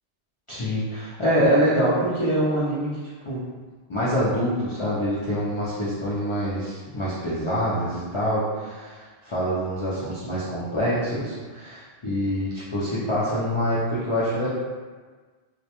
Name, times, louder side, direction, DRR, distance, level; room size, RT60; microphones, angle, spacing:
voice 1, 0.5-2.9 3.2-3.5 3.9-14.5, equal, 55° left, -10 dB, 0.3 m, -25 dB
2.1 x 2.1 x 2.8 m, 1.4 s
omnidirectional pair, 1.1 m